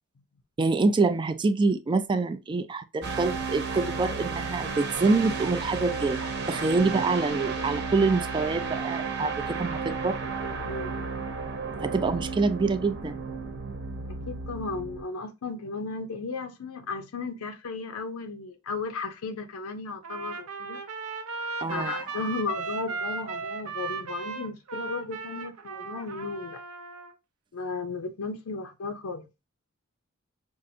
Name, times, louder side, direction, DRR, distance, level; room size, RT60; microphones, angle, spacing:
voice 1, 0.6-10.2 11.8-13.2 21.6-21.9, right 3 dB, 20° right, 0.3 m, -26 dB
sound 1, 3.0-15.0, right 4 dB, 55° right, 1.0 m, -33 dB
voice 2, 10.7-11.2 14.1-20.8 21.7-26.6 27.5-29.3, left 4 dB, 80° left, 0.5 m, -35 dB
Trumpet, 20.0-27.1, right 4 dB, 75° right, 0.6 m, -36 dB
5.4 x 2.4 x 2.6 m
head